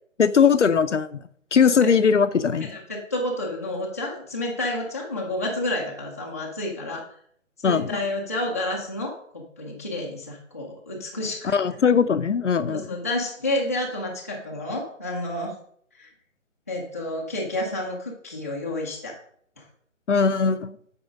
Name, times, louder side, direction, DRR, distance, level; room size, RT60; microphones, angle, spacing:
voice 1, 0.2-1.2 1.5-2.8 7.6-8.0 11.4-13.0 20.1-20.8, left 6 dB, 65° left, 12 dB, 0.7 m, -20 dB
voice 2, 2.6-7.0 7.6-11.6 12.7-15.6 16.0-16.1 16.7-19.2 19.6-19.7, left 1 dB, 10° left, -3 dB, 0.6 m, -30 dB
8.1 x 4.9 x 5.1 m, 0.63 s
figure-of-eight pair, 145°, 39 cm